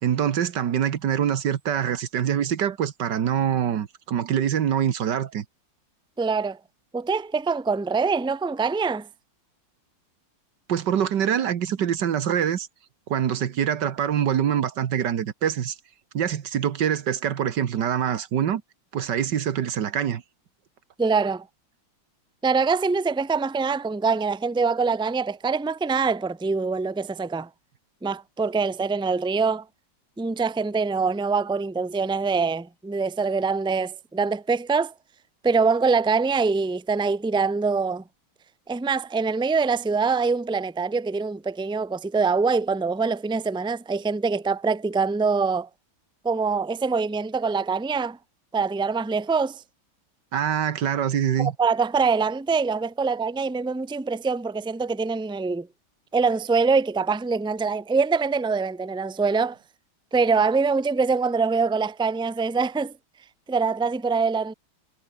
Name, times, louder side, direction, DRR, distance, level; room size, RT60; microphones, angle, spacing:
voice 1, 0.0-5.4 10.7-12.7 13.1-15.7 16.1-18.6 18.9-20.2 50.3-51.5, right 9 dB, 65° right, 1.8 m, -24 dB
voice 2, 6.2-6.6 6.9-9.1 21.0-21.5 22.4-27.5 28.0-29.6 30.2-34.9 35.4-38.0 38.7-45.7 46.2-48.2 48.5-49.6 51.4-55.7 56.1-59.6 60.1-62.9 63.5-64.5, right 4 dB, 5° right, 0.4 m, -24 dB
omnidirectional pair, 2.1 m